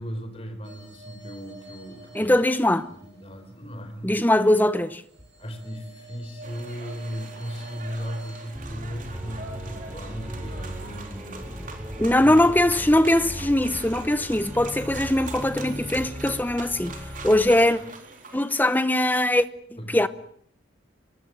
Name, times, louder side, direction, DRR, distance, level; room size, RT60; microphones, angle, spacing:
voice 1, 0.0-2.5 3.0-4.3 5.4-11.8 12.1-12.5 19.8-20.0, equal, 30° left, 4.3 m, -37 dB
sound 1, 0.6-3.9 4.5-8.5, right 1 dB, 60° right, 5.3 m, -48 dB
voice 2, 2.1-2.9 4.0-5.0 12.0-17.0 17.2-17.8 18.3-19.4 19.9-20.1, left 1 dB, 10° left, 1.0 m, -21 dB
sound 2, 6.4-18.8, right 4 dB, 40° right, 4.0 m, -43 dB
Organ, 8.5-17.7, equal, 10° right, 3.5 m, -37 dB
24.5 x 22.5 x 7.7 m
head